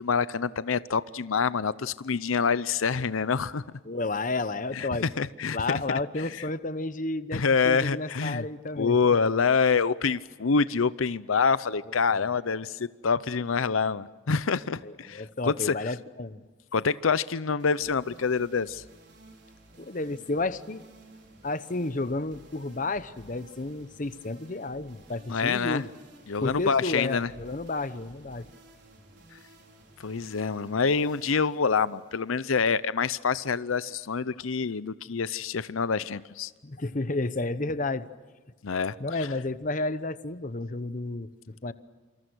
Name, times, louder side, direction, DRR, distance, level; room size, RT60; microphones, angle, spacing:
voice 1, 0.0-3.6 4.7-4.9 5.2-5.6 6.2-6.3 7.3-8.5 8.8-15.7 16.7-18.8 25.3-25.8 26.3-27.3 30.0-36.5 38.6-38.9, left 5 dB, 90° left, 0.7 m, -26 dB
voice 2, 3.8-5.1 5.5-9.0 12.1-12.2 14.8-16.4 19.8-20.8 21.4-25.9 26.4-28.5 36.6-38.1 39.0-41.7, left 2 dB, 40° left, 0.9 m, -31 dB
sound 1, 17.6-33.0, right 2 dB, 55° right, 5.0 m, -54 dB
27.5 x 26.5 x 6.3 m
head